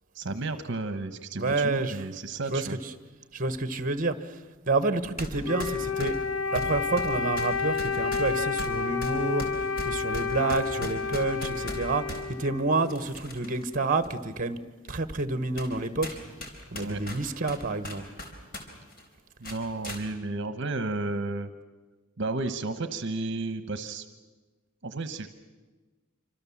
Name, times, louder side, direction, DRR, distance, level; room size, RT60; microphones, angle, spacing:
voice 1, 0.1-2.8 16.7-17.0 19.4-21.5 22.2-24.1 24.8-25.3, right 3 dB, 60° right, 10 dB, 1.1 m, -32 dB
voice 2, 1.3-2.0 2.5-2.7 3.3-4.1 4.7-6.2 6.5-9.5 9.8-14.6 14.9-16.2 16.7-18.0, right 3 dB, 40° right, 12 dB, 1.3 m, -28 dB
sound 1, 5.2-5.3 5.6-12.2 12.9-13.6 14.0-14.1 14.9-15.0 15.6-15.7 16.0-18.6 18.9-19.0 19.4-20.0, left 1 dB, 45° left, 4.2 m, -38 dB
Wind instrument woodwind instrument, 5.4-13.0, left 5 dB, 70° left, 1.5 m, -30 dB
27.0 x 25.0 x 7.3 m, 1.3 s
head